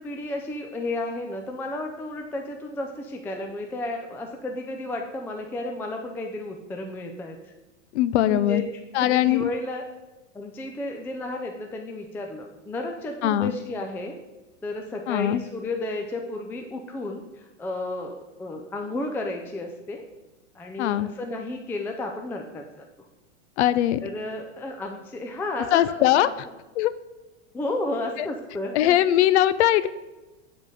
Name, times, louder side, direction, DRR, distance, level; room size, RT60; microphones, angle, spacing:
voice 1, 0.0-7.4 8.3-8.6 9.0-9.8 10.3-14.2 14.6-20.0 20.5-22.9 24.0-26.3 27.5-29.0, left 2 dB, 5° left, 3 dB, 0.4 m, -32 dB
voice 2, 7.9-8.6 8.9-9.5 13.2-13.5 15.1-15.4 20.8-21.1 23.6-24.0 25.7-26.3 26.8-26.9 28.7-29.9, left 13 dB, 65° left, 14 dB, 0.5 m, -20 dB
9.6 x 4.0 x 4.9 m, 1.1 s
hypercardioid pair, 125°, 36 cm